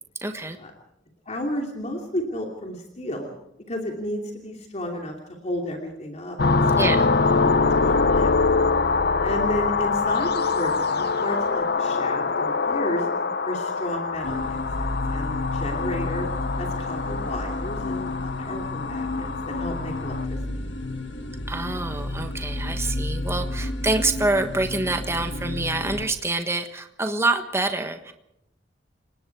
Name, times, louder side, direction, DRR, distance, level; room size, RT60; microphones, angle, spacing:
voice 1, 0.2-0.6 6.8-7.0 21.5-28.1, right 2 dB, 15° right, 6 dB, 1.3 m, -26 dB
voice 2, 1.2-3.3 3.7-5.1 5.4-7.1 7.3-7.5 7.8-8.3 9.2-13.1 13.4-16.3 16.6-20.4, left 1 dB, 40° left, 1 dB, 2.9 m, -32 dB
sound 1, 6.4-20.2, left 4 dB, 60° left, 0.9 m, -24 dB
sound 2, 14.2-26.1, left 1 dB, 85° left, 2.2 m, -31 dB
29.5 x 18.5 x 4.8 m, 0.80 s
head